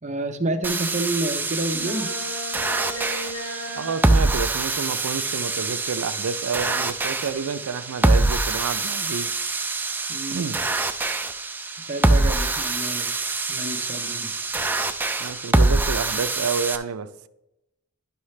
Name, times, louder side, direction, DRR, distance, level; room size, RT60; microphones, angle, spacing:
voice 1, 0.0-2.1 10.1-10.4 11.8-13.1 13.5-14.3, right 1 dB, 30° right, 0.7 m, -29 dB
sound 1, 0.6-16.8, right 2 dB, 10° right, 0.3 m, -24 dB
sound 2, 1.7-4.1, left 1 dB, 65° left, 2.1 m, -34 dB
voice 2, 3.8-9.4 10.3-10.6 15.2-17.3, right 5 dB, 75° right, 0.5 m, -29 dB
11.5 x 5.6 x 3.2 m
head